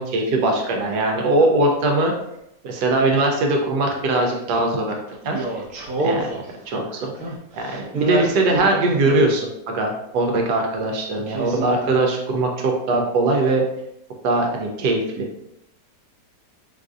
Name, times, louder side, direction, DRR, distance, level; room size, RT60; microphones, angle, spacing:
voice 1, 0.0-2.1 2.6-5.0 5.2-5.4 6.0-6.2 6.7-7.1 7.6-13.6 14.2-15.5, right 2 dB, 80° right, 2 dB, 1.2 m, -21 dB
voice 2, 5.2-6.5 7.2-8.7 9.0-9.1 11.3-11.7, right 2 dB, 10° right, -7 dB, 0.4 m, -27 dB
3.9 x 2.5 x 2.4 m, 0.81 s
omnidirectional pair, 1.9 m